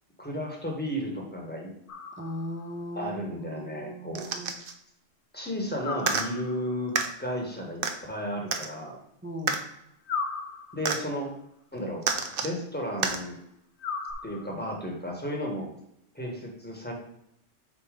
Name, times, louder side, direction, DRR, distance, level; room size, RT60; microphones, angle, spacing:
voice 1, 0.2-1.7 2.9-4.3 5.3-9.0 10.7-11.3 11.7-12.0 12.4-13.4 14.2-15.7 16.1-16.9, equal, 10° left, 0 dB, 1.2 m, -33 dB
sound 1, 1.9-2.7 5.8-6.8 10.1-11.1 13.8-14.8, left 5 dB, 55° left, 0.6 m, -37 dB
voice 2, 2.2-3.2 3.5-4.6 9.2-9.6, equal, 10° right, 1 dB, 0.7 m, -37 dB
sound 2, 4.1-4.7 6.0-6.3 7.0-7.1 7.8-7.9 8.5-8.7 9.5-9.6 10.9-11.0 12.0-12.5 13.0-13.2 14.1-14.2, right 5 dB, 55° right, 0.7 m, -28 dB
5.1 x 4.2 x 5.1 m, 0.79 s
omnidirectional pair, 1.3 m